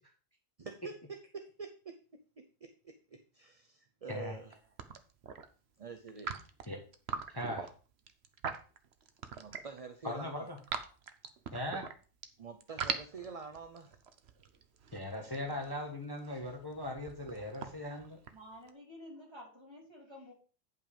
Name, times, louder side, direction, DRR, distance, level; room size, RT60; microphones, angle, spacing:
voice 1, 0.6-4.6 5.8-6.3 9.3-10.5 12.4-14.0, right 4 dB, 35° right, 0.7 m, -47 dB
sound 1, 4.3-4.5 4.8-5.5 6.1-9.8 10.2-12.3 12.6-18.7, right 6 dB, 55° right, 1.1 m, -42 dB
voice 2, 7.3-7.7 10.0-10.6 11.5-11.9 14.9-18.2, left 1 dB, 20° left, 1.4 m, -39 dB
voice 3, 18.3-20.3, left 1 dB, 20° right, 3.2 m, -51 dB
9.2 x 5.7 x 5.1 m
omnidirectional pair, 1.4 m